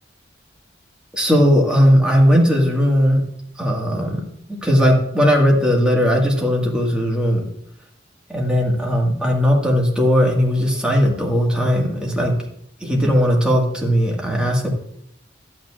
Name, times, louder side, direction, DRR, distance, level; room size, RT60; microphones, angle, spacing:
voice 1, 1.1-3.2 3.6-4.2 4.5-7.5 8.3-12.3 12.8-14.7, equal, 5° right, -1 dB, 1.7 m, -17 dB
11.5 x 8.8 x 2.4 m, 0.71 s
head